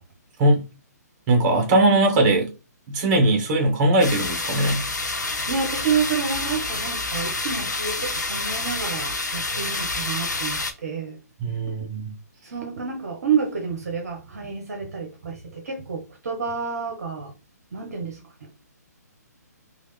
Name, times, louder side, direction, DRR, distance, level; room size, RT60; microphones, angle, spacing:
voice 1, 1.3-2.5 2.9-4.9 11.4-12.1, right 1 dB, 30° right, 1.2 m, -20 dB
sound 1, 4.0-10.7, left 3 dB, 80° left, 0.6 m, -28 dB
voice 2, 5.3-11.2 12.4-17.3 17.7-18.5, right 6 dB, 60° right, 0.8 m, -29 dB
3.2 x 2.5 x 3.1 m
figure-of-eight pair, 135°, 9 cm